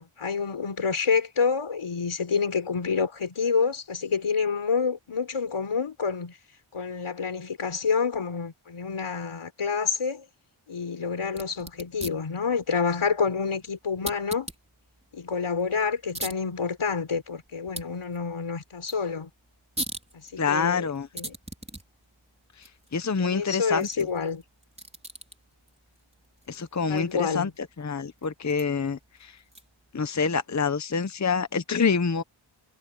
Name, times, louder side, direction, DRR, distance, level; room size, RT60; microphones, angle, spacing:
voice 1, 0.0-6.4 6.7-10.2 10.7-14.5 15.1-19.3 20.1-20.9 21.1-21.3 23.2-24.4 26.9-27.5, left 5 dB, 75° left, 4.6 m, -28 dB
sound 1, 11.2-29.9, right 1 dB, 15° right, 4.2 m, -43 dB
voice 2, 20.4-21.1 22.6-24.1 26.5-27.5 27.8-29.4 29.9-32.2, left 5 dB, 35° left, 0.9 m, -27 dB
wide cardioid pair, 115°, 50 cm